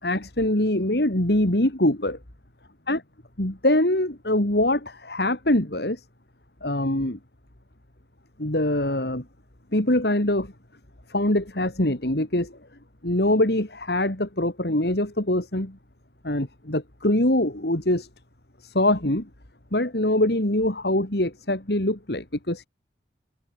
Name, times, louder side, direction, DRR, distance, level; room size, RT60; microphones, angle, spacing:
voice 1, 0.0-2.2 2.9-3.0 3.4-6.0 6.6-7.2 8.4-9.2 9.7-10.5 11.1-12.6 13.0-15.8 16.2-18.1 18.6-19.3 19.7-22.7, left 1 dB, 60° left, 2.9 m, -23 dB
head